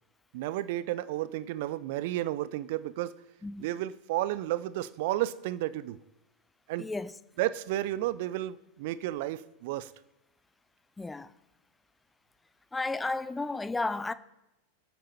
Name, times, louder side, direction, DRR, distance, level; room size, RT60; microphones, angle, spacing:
voice 1, 0.3-3.1 3.6-6.0 6.7-6.9 7.4-9.9, right 14 dB, 50° right, 0.6 m, -32 dB
voice 2, 6.8-7.1 11.0-11.3 12.7-14.1, left 3 dB, 10° left, 0.6 m, -33 dB
25.0 x 8.8 x 4.3 m
figure-of-eight pair, 90°, 0 cm